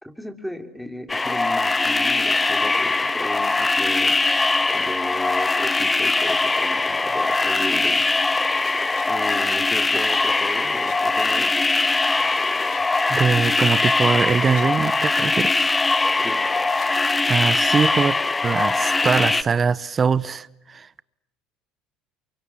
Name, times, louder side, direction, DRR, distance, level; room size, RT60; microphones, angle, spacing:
voice 1, 0.0-4.1 4.7-8.0 9.1-11.5 16.2-16.4, equal, ahead, 3.2 m, -34 dB
sound 1, 1.1-19.4, left 3 dB, 15° left, 1.2 m, -21 dB
sound 2, 8.4-9.1 10.1-11.0 11.8-11.9 12.2-12.9 13.9-14.7 16.2-16.9, left 7 dB, 60° left, 7.0 m, -45 dB
voice 2, 13.1-15.7 17.3-21.0, right 5 dB, 30° right, 1.0 m, -22 dB
28.5 x 24.5 x 8.6 m
supercardioid pair, 90°, 0 cm